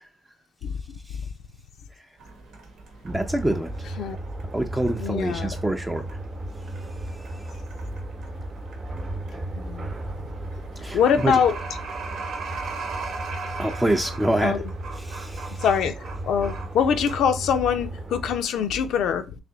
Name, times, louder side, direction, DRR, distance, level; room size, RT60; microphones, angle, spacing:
sound 1, 2.2-18.2, right 4 dB, 75° right, 0.9 m, -40 dB
voice 1, 3.0-3.9 4.5-6.0 10.8-11.3 13.6-14.6 15.0-15.6, right 1 dB, 10° right, 0.5 m, -26 dB
sound 2, 3.1-18.4, right 1 dB, 40° right, 0.9 m, -35 dB
voice 2, 5.0-5.6 9.5-9.9 10.9-11.6 14.4-14.7 15.6-19.4, left 7 dB, 75° left, 0.5 m, -23 dB
3.3 x 2.7 x 3.9 m
cardioid pair, 90°, 0 cm